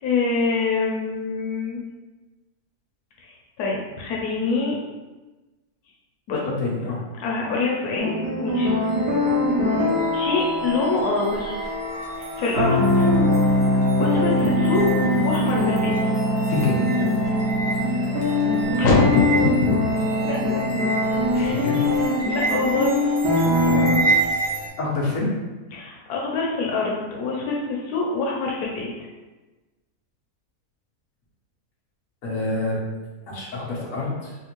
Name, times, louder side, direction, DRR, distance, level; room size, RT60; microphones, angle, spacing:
voice 1, 0.0-1.8 3.2-4.8 6.3-6.4 7.2-8.7 10.1-11.5 12.2-13.0 14.0-14.8 15.2-16.2 18.8-19.8 20.2-20.6 21.4-21.6 22.2-23.0 25.7-28.9, left 3 dB, 90° left, -3 dB, 1.2 m, -25 dB
voice 2, 6.4-7.0 16.5-16.8 21.3-21.8 23.7-23.8 24.8-25.3 32.2-32.8 33.3-34.4, left 3 dB, 65° left, -5 dB, 1.2 m, -27 dB
sound 1, 8.0-24.0, left 1 dB, 85° right, 1.4 m, -22 dB
sound 2, 8.8-24.7, right 3 dB, 60° right, 0.5 m, -31 dB
3.5 x 2.4 x 2.9 m, 1.2 s
omnidirectional pair, 1.6 m